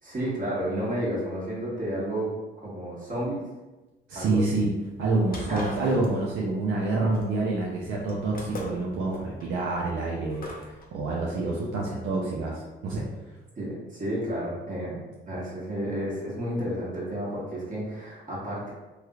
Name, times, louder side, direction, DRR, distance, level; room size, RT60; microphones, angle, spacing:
voice 1, 0.0-2.3 2.6-3.4 4.1-4.6 5.3-5.7 13.6-15.0 15.3-18.7, equal, 40° right, -6 dB, 1.4 m, -31 dB
voice 2, 4.1-4.7 5.0-10.4 10.9-13.0, right 3 dB, 80° right, -4 dB, 0.6 m, -27 dB
sound 1, 4.9-10.9, left 1 dB, 45° left, 0.8 m, -42 dB
3.3 x 2.9 x 2.3 m, 1.1 s
cardioid pair, 90°, 20 cm